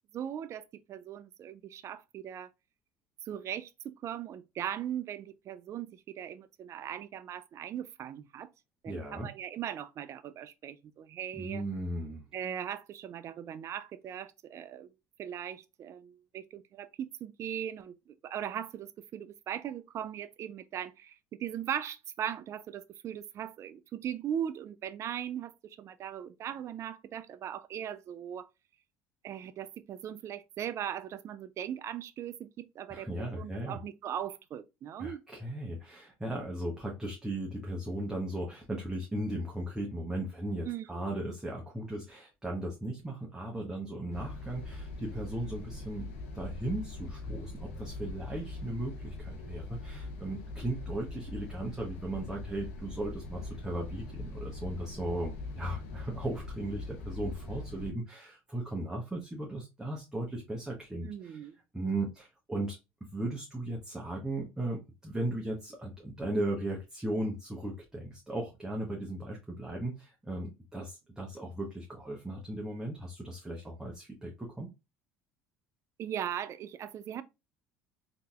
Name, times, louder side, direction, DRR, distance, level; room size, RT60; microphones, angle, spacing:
voice 1, 0.1-2.5 3.2-8.5 8.8-11.6 12.3-14.9 15.2-28.5 29.2-35.2 40.6-41.1 61.0-61.5 76.0-77.2, right 9 dB, 45° right, 0.4 m, -39 dB
voice 2, 8.9-9.3 11.3-12.3 32.9-33.8 35.0-61.4 61.7-62.8 63.1-74.7, right 1 dB, 10° right, 0.9 m, -37 dB
sound 1, 44.1-57.9, left 2 dB, 85° left, 0.8 m, -42 dB
3.7 x 2.8 x 2.4 m
hypercardioid pair, 80°, 7 cm